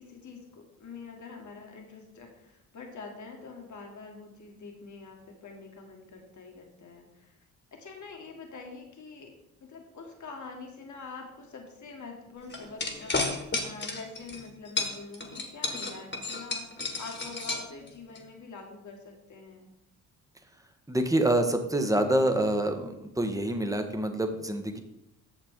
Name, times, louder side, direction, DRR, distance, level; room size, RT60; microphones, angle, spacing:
voice 1, 0.0-7.4 7.7-19.7, left 4 dB, 45° left, 2 dB, 1.8 m, -45 dB
sound 1, 12.5-14.4 14.8-18.2, left 3 dB, 25° left, 1.7 m, -32 dB
voice 2, 20.9-24.8, right 1 dB, 10° right, 6 dB, 1.2 m, -26 dB
8.9 x 6.6 x 3.7 m, 0.86 s
hypercardioid pair, 55°, 40 cm